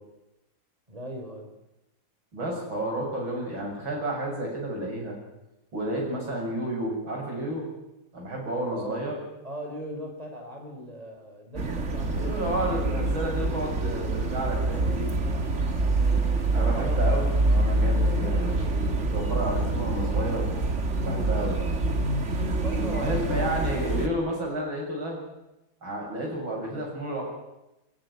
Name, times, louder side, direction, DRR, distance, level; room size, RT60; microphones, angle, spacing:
voice 1, 0.9-1.5 8.7-9.0 9.4-13.1 16.0-17.3 22.3-24.7, equal, 15° right, 2 dB, 4.9 m, -40 dB
voice 2, 2.3-5.2 5.7-7.7 8.1-9.2 12.0-15.1 16.5-18.7 19.1-20.7 21.0-21.6 22.7-25.2 25.8-27.2, right 1 dB, 80° right, -1 dB, 8.0 m, -31 dB
sound 1, 11.6-24.1, right 2 dB, 40° right, 2.0 m, -26 dB
25.0 x 14.5 x 9.8 m, 0.95 s
omnidirectional pair, 2.1 m